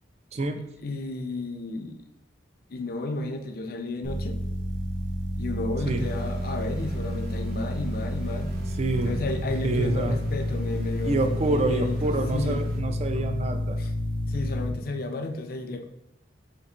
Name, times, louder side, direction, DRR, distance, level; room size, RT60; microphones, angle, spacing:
voice 1, 0.8-2.0 2.7-4.4 5.4-8.6 9.0-12.7 13.8-13.9 14.3-15.8, left 2 dB, 50° left, 5 dB, 0.5 m, -33 dB
sound 1, 4.0-14.7, left 1 dB, 85° right, 1.0 m, -30 dB
sound 2, 5.9-12.8, left 2 dB, 55° right, 1.0 m, -45 dB
voice 2, 8.8-9.2 9.6-10.2 11.0-13.8, right 2 dB, 35° right, 7 dB, 0.4 m, -27 dB
6.5 x 2.6 x 2.8 m, 0.83 s
head